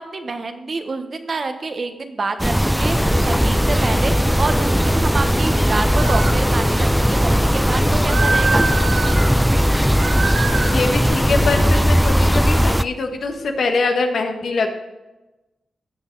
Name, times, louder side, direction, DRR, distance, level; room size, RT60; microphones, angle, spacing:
voice 1, 0.0-8.6, right 3 dB, 50° right, 8 dB, 1.1 m, -27 dB
sound 1, 2.4-12.8, equal, 5° right, 0.3 m, -18 dB
Engine, 2.7-13.7, left 3 dB, 60° left, 2.5 m, -30 dB
sound 2, 6.0-6.4 8.1-9.3 10.0-10.8, right 4 dB, 90° right, 1.5 m, -24 dB
voice 2, 10.7-14.7, left 3 dB, 75° left, 4 dB, 1.4 m, -23 dB
16.0 x 6.3 x 4.0 m, 1.1 s
cardioid pair, 60°, 0 cm